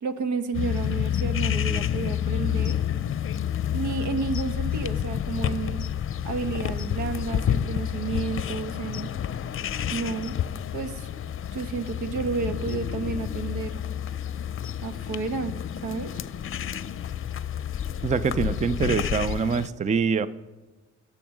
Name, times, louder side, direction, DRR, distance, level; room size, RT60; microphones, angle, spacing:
voice 1, 0.0-2.8 3.7-5.8 6.2-9.1 9.9-10.4 10.7-11.1 11.5-13.8 14.8-15.5 15.8-16.1, right 4 dB, 75° right, 10 dB, 1.3 m, -31 dB
sound 1, 0.5-19.7, left 9 dB, 45° left, 0.6 m, -29 dB
voice 2, 18.0-20.3, right 5 dB, 25° right, 14 dB, 0.5 m, -24 dB
17.0 x 7.1 x 6.1 m, 1.2 s
cardioid pair, 90°, 30 cm